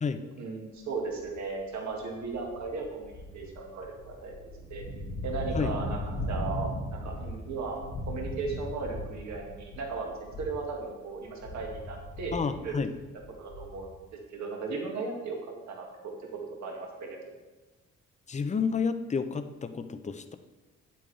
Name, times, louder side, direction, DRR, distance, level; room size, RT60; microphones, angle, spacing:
voice 1, 0.4-4.4 4.7-4.8 5.2-7.8 8.1-12.7 13.4-13.9 14.3-16.1 16.6-17.3, right 4 dB, 65° right, 0 dB, 1.8 m, -36 dB
sound 1, 1.2-1.5 2.0-10.8 11.1-14.0, left 1 dB, 90° left, 2.2 m, -38 dB
voice 2, 12.3-12.9 18.3-20.3, left 5 dB, 25° left, 9 dB, 0.6 m, -30 dB
8.6 x 8.6 x 3.3 m, 1.2 s
cardioid pair, 90°, 30 cm